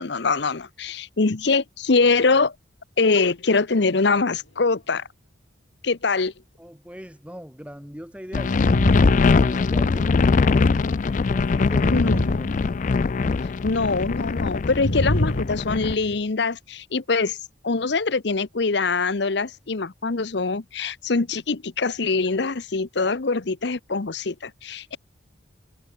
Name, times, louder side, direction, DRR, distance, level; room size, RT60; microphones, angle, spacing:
voice 1, 0.0-2.5 3.0-5.1 5.8-6.3 11.9-12.3 13.6-17.4 17.6-25.0, left 4 dB, 60° left, 0.8 m, -23 dB
voice 2, 6.6-10.7 11.0-12.5, equal, 5° right, 4.4 m, -40 dB
sound 1, 8.3-15.9, left 4 dB, 40° left, 0.4 m, -21 dB
sound 2, 8.4-10.0 11.4-13.1 14.7-16.2, left 1 dB, 75° left, 2.4 m, -26 dB
head